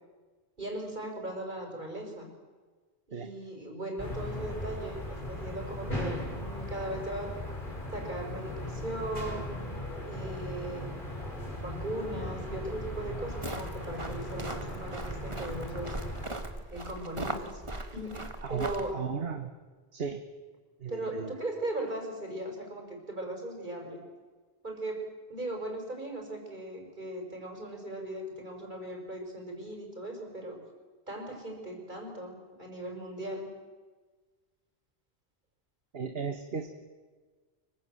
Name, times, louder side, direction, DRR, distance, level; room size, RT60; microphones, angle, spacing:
voice 1, 0.6-2.3 3.1-7.4 7.9-11.0 11.6-16.0 16.7-17.6 17.9-19.0 20.9-24.0 24.6-30.6 31.1-33.5, right 1 dB, 45° right, 2 dB, 6.1 m, -38 dB
sound 1, 4.0-16.2, left 1 dB, 50° left, 5.4 m, -38 dB
sound 2, 13.3-18.9, right 2 dB, 30° right, 1.9 m, -39 dB
voice 2, 18.4-19.5 19.9-20.2 20.8-21.3 35.9-36.8, right 6 dB, 60° right, 7 dB, 1.6 m, -36 dB
25.5 x 24.5 x 7.8 m, 1.4 s
omnidirectional pair, 1.1 m